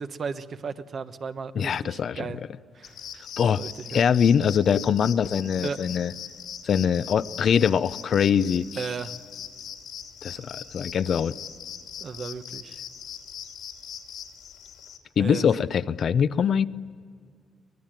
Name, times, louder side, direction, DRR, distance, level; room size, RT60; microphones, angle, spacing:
voice 1, 0.0-2.4 2.7-3.0 3.6-4.0 5.6-5.8 8.7-9.1 12.0-12.8 15.2-15.5, right 5 dB, 50° right, 9 dB, 1.2 m, -35 dB
voice 2, 1.6-2.2 3.4-3.6 3.9-6.1 6.6-8.7 10.2-11.3 15.2-16.7, left 7 dB, 55° left, 14 dB, 0.6 m, -23 dB
sound 1, 2.8-15.0, left 8 dB, 80° left, 2.6 m, -40 dB
24.0 x 19.5 x 9.0 m, 2.1 s
cardioid pair, 90°, 0 cm